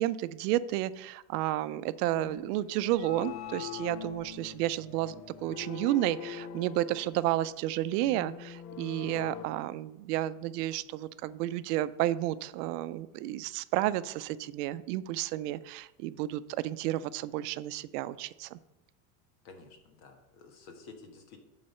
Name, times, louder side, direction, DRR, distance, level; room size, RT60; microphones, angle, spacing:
voice 1, 0.0-5.1 5.4-18.6, right 14 dB, 80° right, 15 dB, 0.5 m, -31 dB
sound 1, 2.1-9.4, left 9 dB, 90° left, 0.8 m, -43 dB
voice 2, 19.4-21.4, left 4 dB, 55° left, 4 dB, 1.5 m, -51 dB
8.6 x 4.0 x 5.4 m, 0.91 s
cardioid pair, 160°, 46 cm